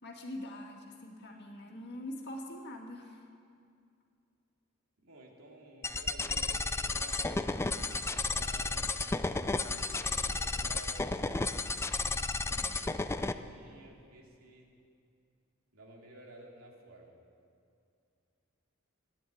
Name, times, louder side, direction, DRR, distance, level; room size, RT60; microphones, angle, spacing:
voice 1, 0.0-3.3 12.5-12.8, left 1 dB, 55° left, 1 dB, 2.0 m, -44 dB
voice 2, 5.0-9.0 10.0-11.8 12.6-14.7 15.7-17.2, right 1 dB, 80° right, -1 dB, 2.7 m, -53 dB
sound 1, 5.8-13.3, left 3 dB, 10° left, 0.4 m, -33 dB
14.0 x 10.0 x 9.3 m, 2.4 s
head